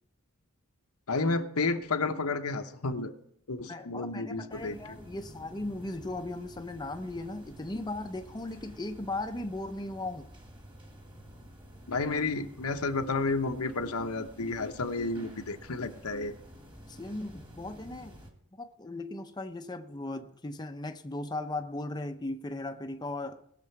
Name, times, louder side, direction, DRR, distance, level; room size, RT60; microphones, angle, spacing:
voice 1, 1.1-3.1 3.5-4.8 11.9-16.3, left 3 dB, 90° left, 1.0 m, -31 dB
voice 2, 3.7-10.3 16.9-18.2 18.5-23.4, left 2 dB, 20° left, 0.6 m, -37 dB
sound 1, 4.5-18.3, equal, 20° right, 1.8 m, -51 dB
19.5 x 6.9 x 4.7 m
head